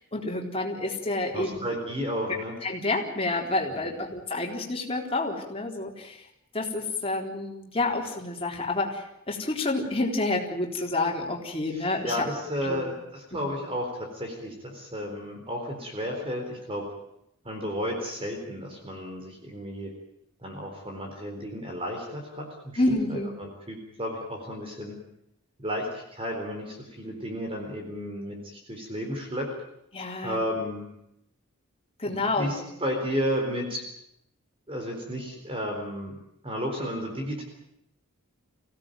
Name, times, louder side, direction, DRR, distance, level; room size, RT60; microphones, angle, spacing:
voice 1, 0.0-1.6 2.6-6.2 6.5-12.3 12.7-12.8 13.4-13.5 22.8-23.3 29.9-30.4 32.0-32.5, left 2 dB, 25° left, 0 dB, 4.0 m, -29 dB
voice 2, 1.3-2.6 3.7-4.1 11.7-16.8 17.4-19.9 20.4-22.8 23.1-24.9 25.6-29.5 30.2-30.9 32.1-33.8 34.7-36.2 36.4-37.4, equal, 25° right, 2 dB, 4.1 m, -33 dB
25.0 x 17.0 x 9.2 m, 0.79 s
head